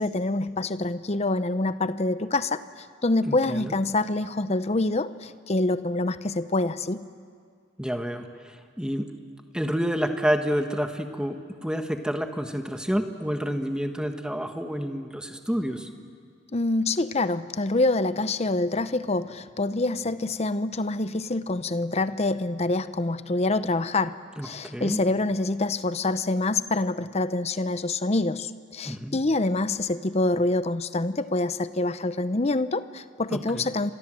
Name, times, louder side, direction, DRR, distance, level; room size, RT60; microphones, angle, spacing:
voice 1, 0.0-7.0 16.5-24.2 24.4-33.9, left 2 dB, 30° left, 13 dB, 0.7 m, -26 dB
voice 2, 3.2-3.8 7.8-9.0 9.5-15.9 24.4-25.0 28.8-29.2 33.3-33.7, equal, 5° right, 5 dB, 1.4 m, -29 dB
29.5 x 25.5 x 7.7 m, 2.1 s
head